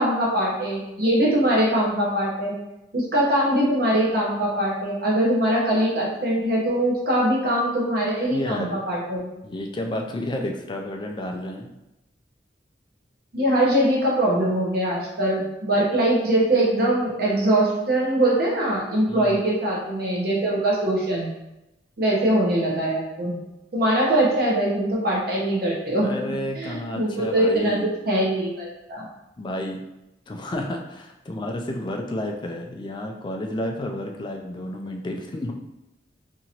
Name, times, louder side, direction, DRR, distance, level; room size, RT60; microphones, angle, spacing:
voice 1, 0.0-2.5 2.9-9.3 13.3-21.3 22.0-23.4 23.7-26.1 26.6-29.0, right 1 dB, 55° right, -4 dB, 0.9 m, -22 dB
voice 2, 8.3-8.8 9.4-11.7 19.1-19.5 26.0-27.9 29.4-29.8 30.3-35.5, left 1 dB, 25° left, 2 dB, 0.3 m, -31 dB
2.8 x 2.6 x 2.8 m, 0.93 s
head